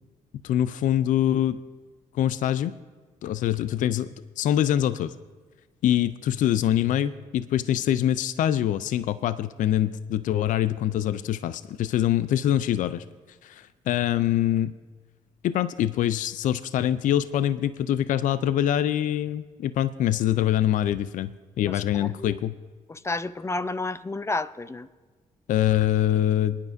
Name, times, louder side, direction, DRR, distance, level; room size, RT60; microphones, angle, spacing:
voice 1, 0.4-1.6 2.1-2.7 3.2-4.1 4.4-5.1 5.8-13.0 13.4-14.7 15.4-22.5 25.5-26.6, left 11 dB, 65° left, 14 dB, 0.4 m, -24 dB
voice 2, 21.6-22.4 22.9-24.9, left 2 dB, 20° left, 14 dB, 0.6 m, -31 dB
27.0 x 9.9 x 2.6 m, 1.4 s
supercardioid pair, 55°, 14 cm